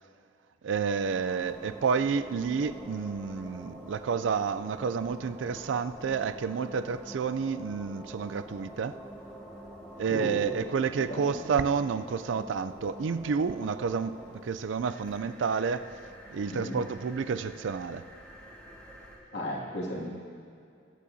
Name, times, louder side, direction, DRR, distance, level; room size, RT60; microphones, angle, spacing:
voice 1, 0.6-9.0 10.0-15.9 16.3-18.0, right 5 dB, 80° right, 12 dB, 0.4 m, -30 dB
sound 1, 0.7-19.2, right 1 dB, 5° left, 1.7 m, -47 dB
voice 2, 10.1-10.5 11.1-11.4 16.5-16.7 19.3-20.0, equal, 70° left, -4 dB, 2.2 m, -34 dB
20.0 x 8.4 x 2.7 m, 2.4 s
head